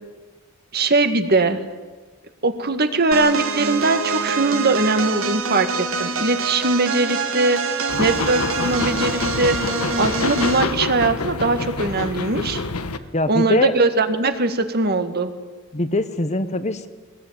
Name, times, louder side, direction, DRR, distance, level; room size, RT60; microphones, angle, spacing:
voice 1, 0.7-1.6 2.4-7.6 8.0-12.6 13.3-15.3, right 3 dB, 45° right, 8 dB, 1.8 m, -21 dB
sound 1, 3.1-10.7, right 4 dB, 65° right, 2.5 m, -26 dB
sound 2, 7.9-13.0, left 3 dB, 85° left, 1.3 m, -26 dB
voice 2, 13.1-13.7 15.7-16.9, left 2 dB, 30° left, 11 dB, 1.1 m, -22 dB
21.5 x 20.5 x 9.5 m, 1.3 s
head